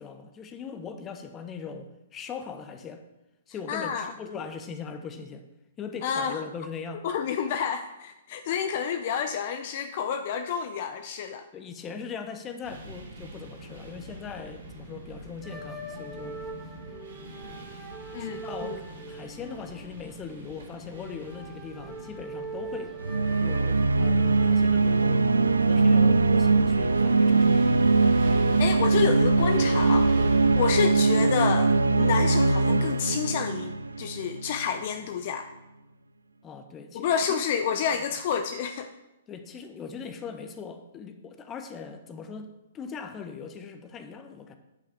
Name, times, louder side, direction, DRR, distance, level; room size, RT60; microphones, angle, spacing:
voice 1, 0.0-3.0 3.5-5.4 5.8-7.0 11.5-16.4 18.2-23.0 23.4-25.2 25.6-27.8 36.4-37.4 39.3-44.6, left 6 dB, 20° left, 8 dB, 0.9 m, -40 dB
voice 2, 3.7-4.1 6.0-6.4 7.0-11.5 18.1-18.8 28.6-30.3 30.5-35.5 36.9-38.9, left 7 dB, 45° left, 8 dB, 0.5 m, -29 dB
sound 1, 12.6-31.1, right 2 dB, 65° right, 3.1 m, -42 dB
sound 2, 15.4-25.0, right 3 dB, ahead, 1.5 m, -42 dB
sound 3, 23.0-34.6, right 3 dB, 80° right, 0.4 m, -21 dB
10.5 x 5.7 x 5.0 m, 0.95 s
figure-of-eight pair, 120°, 0 cm